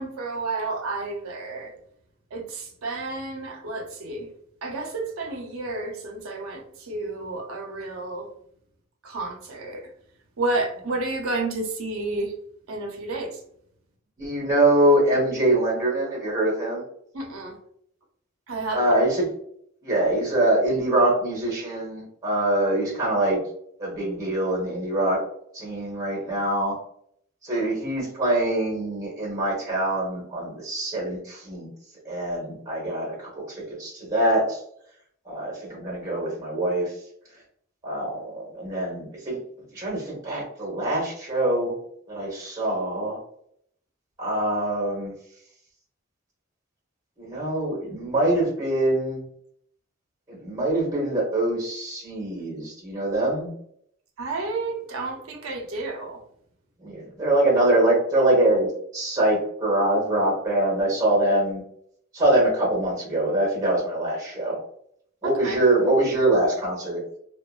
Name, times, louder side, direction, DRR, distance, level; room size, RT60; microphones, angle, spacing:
voice 1, 0.0-1.7 2.3-4.3 4.6-8.3 9.0-9.9 10.4-12.3 12.7-13.4 17.1-17.6 18.5-18.9 54.2-56.2 65.2-65.6, right 2 dB, 85° right, 2 dB, 0.6 m, -31 dB
voice 2, 14.2-16.8 18.7-19.3 19.8-23.4 23.8-25.2 25.5-26.7 27.4-31.7 32.0-34.6 35.2-36.9 37.8-39.4 39.7-41.8 42.1-43.2 44.2-45.1 47.2-49.2 50.3-53.5 56.8-58.7 58.9-61.6 62.1-64.6 65.2-67.0, right 1 dB, 15° right, -4 dB, 1.0 m, -24 dB
2.7 x 2.2 x 2.3 m, 0.67 s
head